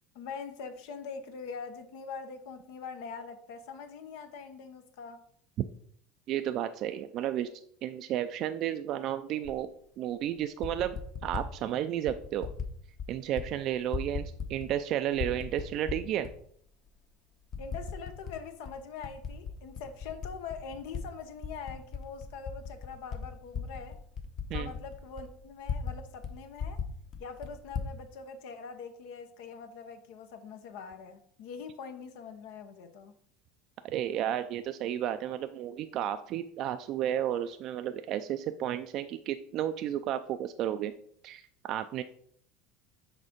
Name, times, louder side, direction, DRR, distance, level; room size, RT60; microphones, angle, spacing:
voice 1, 0.1-5.2 17.6-24.0 24.5-26.8 27.2-33.1, left 5 dB, 75° left, 7 dB, 0.8 m, -43 dB
voice 2, 6.3-7.5 7.8-9.7 10.0-12.5 13.1-16.3 24.5-24.7 33.8-40.9 41.2-42.0, right 11 dB, 55° right, 9 dB, 0.4 m, -32 dB
Typing, 9.4-9.6 10.4-11.5 12.1-12.7 13.0-13.5 13.7-14.8 15.1-16.3 16.9-17.0 17.5-18.4 18.7-21.0 21.4-26.0 26.2-26.3 26.6-27.9, left 6 dB, 50° left, 1.1 m, -37 dB
6.4 x 3.6 x 5.1 m, 0.63 s
supercardioid pair, 105°, 0 cm